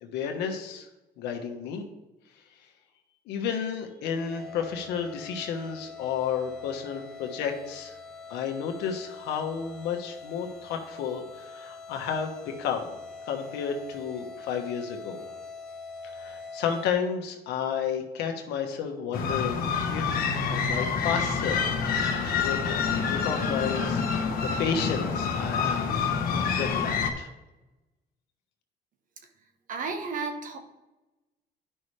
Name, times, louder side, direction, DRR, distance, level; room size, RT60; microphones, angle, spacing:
voice 1, 0.0-0.9 1.2-1.9 3.3-8.0 8.3-12.9 13.3-15.2 16.1-21.7 22.4-27.3, left 7 dB, 85° left, 4 dB, 1.3 m, -32 dB
sound 1, 4.1-16.9, left 4 dB, 5° left, 1.5 m, -44 dB
sound 2, 19.1-27.1, left 5 dB, 60° left, 1.3 m, -27 dB
voice 2, 29.4-30.6, right 4 dB, 50° right, 6 dB, 1.3 m, -34 dB
11.5 x 5.6 x 3.3 m, 1.0 s
cardioid pair, 110°, 17 cm